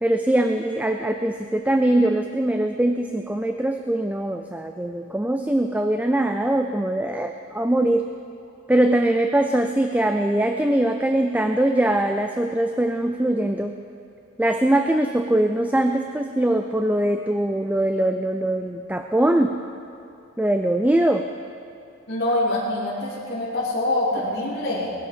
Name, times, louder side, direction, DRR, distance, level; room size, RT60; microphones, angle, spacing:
voice 1, 0.0-8.1 8.7-13.8 14.4-19.6 20.4-21.3, right 1 dB, 10° right, 6 dB, 0.4 m, -22 dB
voice 2, 22.1-24.9, left 1 dB, 55° left, -12 dB, 3.1 m, -25 dB
19.5 x 12.0 x 5.1 m, 2.5 s
head